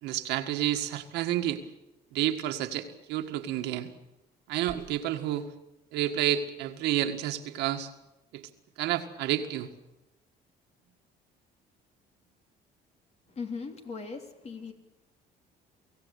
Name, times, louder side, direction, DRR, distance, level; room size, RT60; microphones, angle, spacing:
voice 1, 0.0-1.6 2.1-3.9 4.5-5.5 5.9-7.9 8.3-8.4 8.8-9.7, right 12 dB, 90° right, 6 dB, 1.8 m, -30 dB
voice 2, 13.3-14.7, left 5 dB, 40° left, 5 dB, 3.3 m, -38 dB
24.0 x 17.0 x 8.4 m, 0.95 s
cardioid pair, 110°, 17 cm